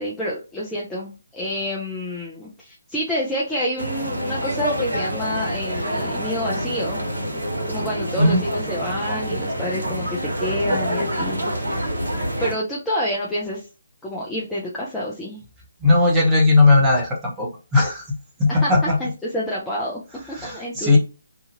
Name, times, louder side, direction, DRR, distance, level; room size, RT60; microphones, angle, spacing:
voice 1, 0.0-7.0 7.3-11.9 12.4-13.7 14.0-15.4 18.6-20.0 20.4-21.0, equal, 5° left, -5 dB, 0.5 m, -28 dB
sound 1, 3.8-12.5, equal, 70° right, 1.4 m, -26 dB
voice 2, 15.8-18.1 18.4-19.0 20.3-21.0, left 2 dB, 10° right, -2 dB, 1.0 m, -17 dB
2.8 x 2.4 x 2.8 m, 0.31 s
figure-of-eight pair, 145°, 0 cm